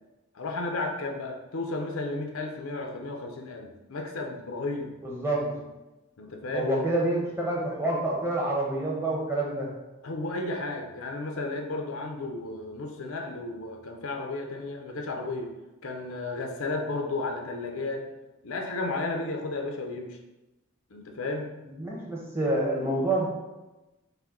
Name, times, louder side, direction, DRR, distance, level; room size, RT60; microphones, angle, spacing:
voice 1, 0.3-4.9 5.4-5.6 6.2-6.7 10.0-15.5 15.8-18.1 18.4-20.2 20.9-21.5, left 2 dB, 90° left, 3 dB, 0.6 m, -33 dB
voice 2, 5.0-5.5 6.5-9.7 21.8-23.3, right 1 dB, 10° right, -3 dB, 0.8 m, -27 dB
5.5 x 2.1 x 3.7 m, 1.0 s
head